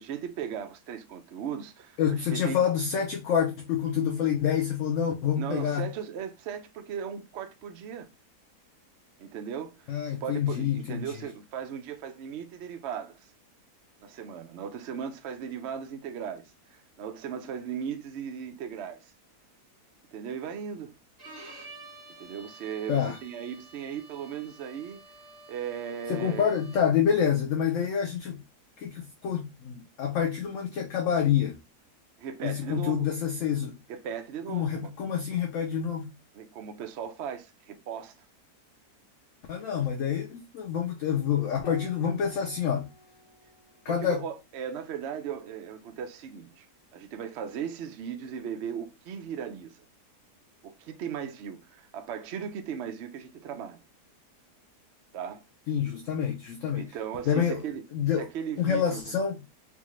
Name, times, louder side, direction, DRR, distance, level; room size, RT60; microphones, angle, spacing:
voice 1, 0.0-2.6 5.4-8.1 9.2-13.3 14.0-16.4 16.7-19.1 20.1-20.9 22.2-25.0 25.5-26.6 32.2-33.1 33.9-34.9 36.3-38.1 39.8-39.9 43.9-46.7 46.9-49.8 50.6-53.8 55.1-55.4 56.7-57.8 58.2-59.2, right 8 dB, 65° right, 0.6 m, -37 dB
voice 2, 2.0-5.9 9.9-11.1 22.9-23.2 26.1-28.4 28.8-31.6 32.4-33.8 34.5-36.1 39.5-42.9 43.8-44.2 55.7-56.8 57.3-57.6 57.9-58.3 58.6-59.4, left 8 dB, 70° left, 0.8 m, -27 dB
Bowed string instrument, 21.2-27.0, right 2 dB, 40° right, 1.4 m, -50 dB
Piano, 41.6-46.5 48.1-48.9, left 2 dB, 85° left, 1.2 m, -53 dB
3.5 x 2.5 x 3.0 m
omnidirectional pair, 1.7 m